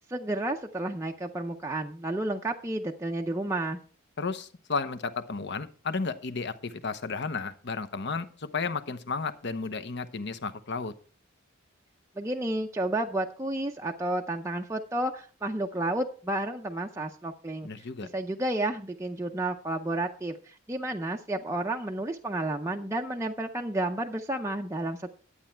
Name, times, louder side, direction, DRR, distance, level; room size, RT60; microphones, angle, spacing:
voice 1, 0.0-3.8 12.2-17.7 18.0-25.1, right 1 dB, 15° right, 2 dB, 0.5 m, -31 dB
voice 2, 4.2-10.9 17.6-18.1, left 4 dB, 55° left, 12 dB, 0.9 m, -33 dB
11.5 x 8.7 x 4.4 m, 0.42 s
head